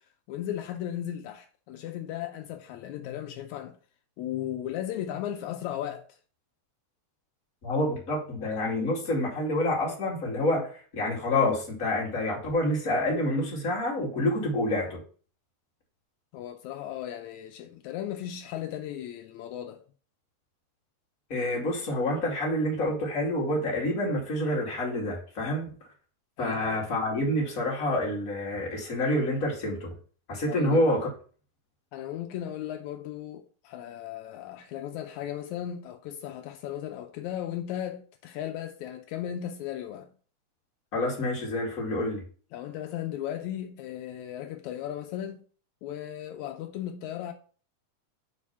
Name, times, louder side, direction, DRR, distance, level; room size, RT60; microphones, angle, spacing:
voice 1, 0.3-3.8 4.2-6.1 16.3-19.8 26.4-26.9 30.5-30.8 31.9-40.1 42.5-45.4 45.8-47.3, left 11 dB, 80° left, 2.0 m, -36 dB
voice 2, 7.6-15.0 21.3-25.8 26.4-29.9 30.3-31.1 40.9-42.2, left 1 dB, 30° left, 2.5 m, -28 dB
5.1 x 5.0 x 5.6 m
omnidirectional pair, 3.3 m